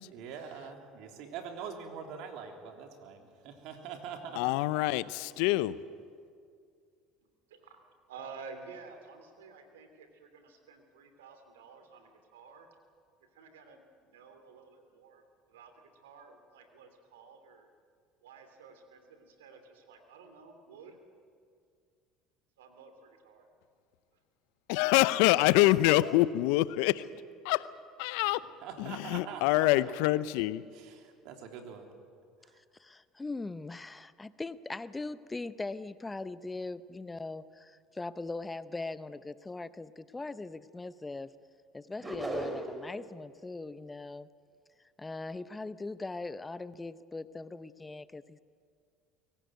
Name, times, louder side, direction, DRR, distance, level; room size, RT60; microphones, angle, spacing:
voice 1, 0.1-4.8 28.6-29.7 30.7-31.9 32.4-32.6, right 7 dB, 65° right, 4 dB, 3.3 m, -44 dB
voice 2, 4.4-5.8 24.7-27.0 27.4-27.7 28.0-28.4 28.8-30.6, left 17 dB, 70° left, 17 dB, 0.7 m, -26 dB
voice 3, 7.2-7.8 8.1-12.7 13.3-17.7 18.2-21.0 22.6-23.5, right 5 dB, 85° right, 7 dB, 2.9 m, -52 dB
voice 4, 32.8-41.3 41.7-44.3 45.0-48.4, left 3 dB, 15° left, 15 dB, 0.7 m, -40 dB
sound 1, 42.0-42.9, right 2 dB, 20° right, 4.7 m, -36 dB
23.0 x 18.0 x 9.2 m, 2.2 s
hypercardioid pair, 70°, 0 cm